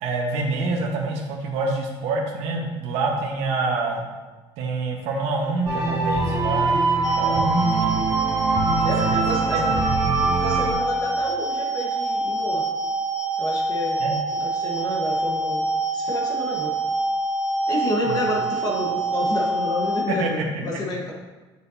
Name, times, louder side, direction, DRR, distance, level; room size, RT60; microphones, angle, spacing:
voice 1, 0.0-4.0 4.6-6.8 7.1-8.1 8.7-9.1 9.5-9.8 10.0-10.4 14.0-14.1 18.0-18.2 20.2-20.5, right 3 dB, 85° right, -1 dB, 1.3 m, -27 dB
sound 1, 5.6-10.7, right 3 dB, 35° right, 2.5 m, -23 dB
sound 2, 7.0-20.0, right 2 dB, 5° right, 0.7 m, -26 dB
voice 2, 8.8-9.8 10.4-12.7 13.4-14.0 14.3-16.7 17.7-21.1, left 2 dB, 40° left, -1 dB, 1.4 m, -29 dB
9.6 x 6.7 x 2.8 m, 1.2 s
cardioid pair, 160°, 11 cm